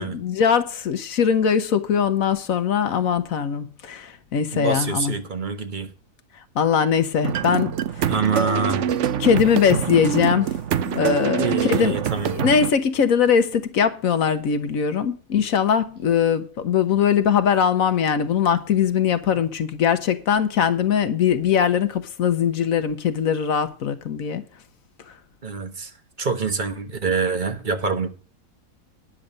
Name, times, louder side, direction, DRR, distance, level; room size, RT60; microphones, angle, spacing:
voice 1, 0.0-5.1 6.5-8.1 9.2-10.6 10.9-12.0 12.3-24.4, left 7 dB, 60° left, 1.2 m, -21 dB
voice 2, 4.5-5.9 8.1-8.9 11.4-12.4 25.4-25.9 26.2-28.1, right 4 dB, 35° right, 1.1 m, -25 dB
sound 1, 7.2-12.7, right 9 dB, 60° right, 0.8 m, -25 dB
10.0 x 7.1 x 6.4 m
omnidirectional pair, 1.7 m